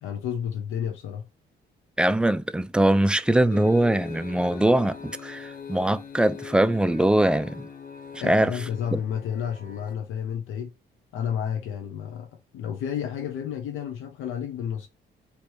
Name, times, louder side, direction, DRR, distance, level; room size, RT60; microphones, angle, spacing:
voice 1, 0.0-1.2 8.2-10.7 11.1-14.9, left 8 dB, 85° left, 0.8 m, -31 dB
voice 2, 2.0-7.7 8.2-8.5 8.9-9.0, right 1 dB, 5° right, 0.3 m, -22 dB
sound 1, 3.5-10.0, left 7 dB, 45° left, 0.7 m, -41 dB
3.2 x 3.0 x 4.6 m
cardioid pair, 90°, 20 cm